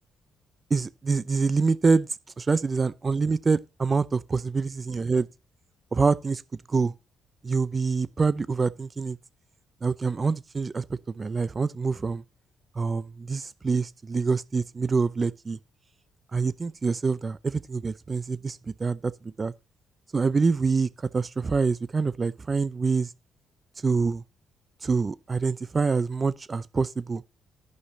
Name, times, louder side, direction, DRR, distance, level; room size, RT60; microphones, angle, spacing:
voice 1, 0.7-2.1 2.4-5.3 5.9-6.4 6.7-6.9 7.4-9.2 9.8-12.2 12.8-15.6 16.3-19.5 20.1-23.1 23.8-24.2 24.8-27.2, right 4 dB, 30° right, 0.7 m, -26 dB
13.0 x 5.6 x 4.0 m
cardioid pair, 90°, 0 cm